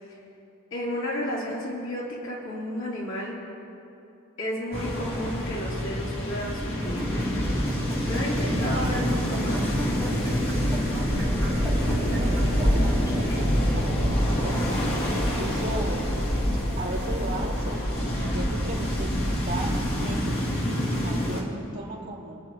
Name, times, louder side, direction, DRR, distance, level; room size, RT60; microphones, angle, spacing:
voice 1, 0.7-3.3 4.4-7.1 7.9-9.6, left 1 dB, 65° left, -6 dB, 3.6 m, -32 dB
sound 1, 4.7-21.4, equal, 45° left, 2.8 m, -26 dB
sound 2, 6.8-13.4, equal, 15° left, 2.6 m, -37 dB
voice 2, 11.4-14.6 15.1-16.0 16.5-20.4 20.6-22.4, right 1 dB, 40° right, -7 dB, 3.2 m, -37 dB
30.0 x 10.5 x 3.1 m, 2.7 s
head